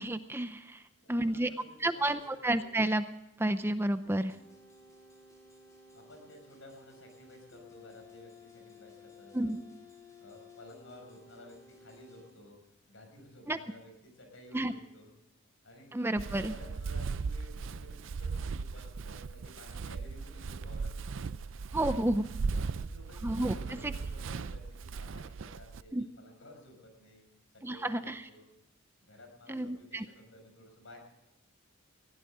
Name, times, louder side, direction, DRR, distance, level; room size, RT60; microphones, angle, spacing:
voice 1, 0.0-0.8 1.1-1.5 1.8-3.0 3.4-4.4 9.3-9.6 13.5-13.6 14.5-14.7 15.9-16.5 21.7-22.2 23.2-23.5 23.8-23.9 25.9-26.0 27.6-28.3 29.5-30.0, right 1 dB, 10° right, 10 dB, 0.6 m, -30 dB
voice 2, 1.0-2.7 5.9-9.8 10.2-12.6 12.9-15.1 15.6-21.3 22.6-27.3 27.5-28.5 29.0-31.0, left 1 dB, 65° left, 4 dB, 5.8 m, -54 dB
sound 1, 4.0-12.3, left 3 dB, 15° left, 3.9 m, -56 dB
Walk footsteps, 16.2-25.8, right 4 dB, 65° right, 0.4 m, -37 dB
20.0 x 16.5 x 3.7 m, 0.91 s
head